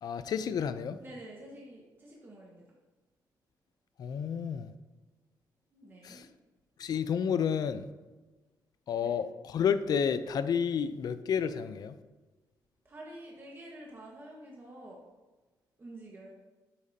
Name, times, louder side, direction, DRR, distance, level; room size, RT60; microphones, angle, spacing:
voice 1, 0.0-1.0 4.0-4.7 6.0-6.3 6.8-7.9 8.9-12.0, left 7 dB, 55° left, 12 dB, 0.5 m, -30 dB
voice 2, 1.0-2.6 5.7-6.2 9.0-9.1 12.8-15.0 15.8-16.3, right 1 dB, 25° right, -3 dB, 1.5 m, -48 dB
8.9 x 8.6 x 2.8 m, 1.2 s
cardioid pair, 110°, 8 cm